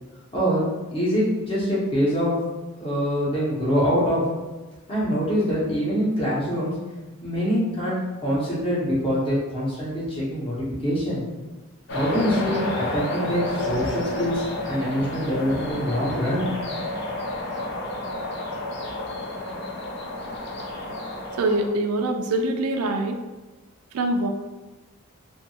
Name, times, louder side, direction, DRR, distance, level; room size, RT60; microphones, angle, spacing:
voice 1, 0.3-2.3 2.8-4.2 4.9-6.7 7.2-11.2 11.9-16.5, equal, 25° left, -7 dB, 0.9 m, -24 dB
sound 1, 11.9-21.7, left 1 dB, 50° left, 0.5 m, -30 dB
voice 2, 21.4-23.2 23.9-24.3, right 2 dB, 85° right, 5 dB, 0.3 m, -24 dB
2.7 x 2.5 x 2.7 m, 1.2 s
head